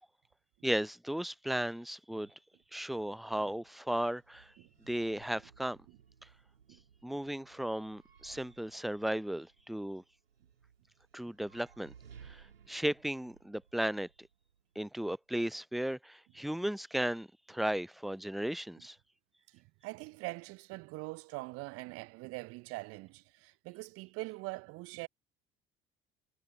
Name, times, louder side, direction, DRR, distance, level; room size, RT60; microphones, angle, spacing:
voice 1, 0.6-2.3 2.7-4.5 4.9-5.8 7.0-10.0 11.1-11.9 12.2-14.3 14.8-19.0, right 1 dB, ahead, 0.5 m, -35 dB
sound 1, 2.8-14.9, right 7 dB, 85° right, 3.0 m, -61 dB
voice 2, 19.5-25.1, right 24 dB, 50° right, 0.5 m, -43 dB
figure-of-eight pair, 55°, 29 cm